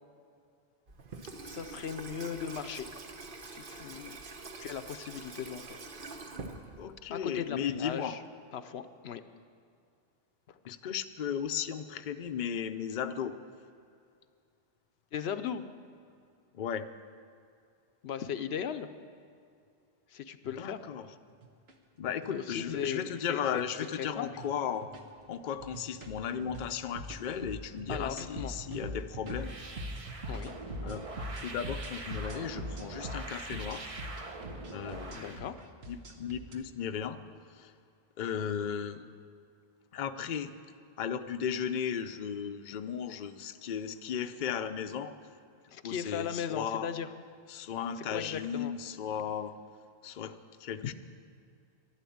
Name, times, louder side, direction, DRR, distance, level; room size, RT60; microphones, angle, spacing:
Water tap faucet / Sink (filling or washing), 0.9-7.1, right 3 dB, 55° right, 1.2 m, -45 dB
voice 1, 1.4-2.9 3.4-4.2 4.6-5.8 7.1-8.2 8.5-9.2 10.5-10.6 15.1-15.6 18.0-18.9 20.1-20.8 22.3-23.4 23.9-24.3 27.9-28.6 30.3-30.5 35.1-35.6 45.7-47.1 48.1-48.7 50.8-50.9, left 8 dB, 80° left, 10 dB, 0.9 m, -37 dB
voice 2, 6.8-8.2 10.7-13.4 16.5-16.9 20.6-21.1 22.0-24.9 25.3-29.5 30.8-31.1 31.4-33.9 34.7-35.4 35.9-37.2 37.5-37.7 38.2-39.0 39.9-40.5 41.0-45.1 45.8-46.9 47.5-49.5 50.0-50.9, left 8 dB, 55° left, 8 dB, 0.7 m, -35 dB
sound 1, 20.5-20.6 21.3-21.7 22.1-22.3 22.6-22.8 23.4-24.0 24.3-24.5 24.8-25.2 25.5-36.5, equal, 75° right, 1.4 m, -42 dB
sound 2, 29.3-35.4, right 3 dB, 35° right, 0.9 m, -44 dB
12.0 x 11.5 x 8.5 m, 2.4 s
omnidirectional pair, 1.1 m